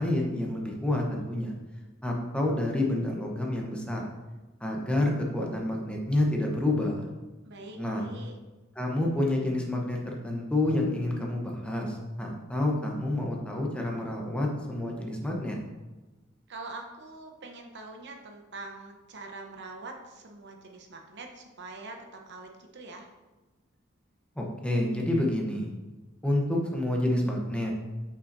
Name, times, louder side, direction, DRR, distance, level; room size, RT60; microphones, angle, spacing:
voice 1, 0.0-1.5 2.0-4.1 4.6-7.1 7.8-8.1 8.8-15.6 24.4-25.7 26.2-27.7, left 1 dB, 5° left, -1 dB, 0.9 m, -28 dB
voice 2, 7.4-8.4 16.5-23.1, right 3 dB, 55° right, 3 dB, 0.9 m, -44 dB
8.2 x 5.5 x 2.7 m, 1.2 s
head